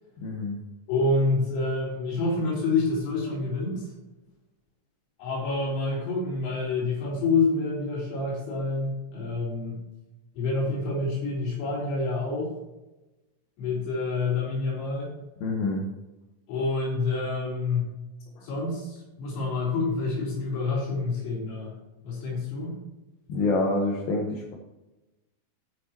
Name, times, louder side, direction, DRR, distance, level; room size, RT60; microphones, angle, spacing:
voice 1, 0.2-0.6 15.4-15.9 18.4-18.5 23.3-24.5, left 2 dB, 70° left, -1 dB, 2.4 m, -27 dB
voice 2, 0.9-3.9 5.2-9.8 10.4-12.5 13.6-15.1 16.5-17.9 18.4-21.8 22.0-22.8, left 3 dB, 85° left, -5 dB, 6.4 m, -27 dB
16.5 x 6.3 x 3.0 m, 1.0 s
omnidirectional pair, 5.7 m